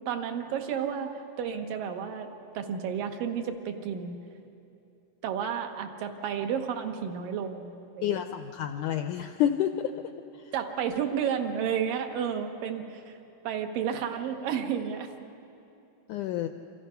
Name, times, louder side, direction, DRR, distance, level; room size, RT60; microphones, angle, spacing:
voice 1, 0.1-1.1 1.4-4.2 5.2-8.1 10.5-13.2 13.4-15.1, right 8 dB, 70° right, 4 dB, 2.8 m, -31 dB
voice 2, 8.0-9.9 16.1-16.5, left 11 dB, 80° left, 7 dB, 1.8 m, -28 dB
28.5 x 25.0 x 5.7 m, 2.7 s
omnidirectional pair, 4.3 m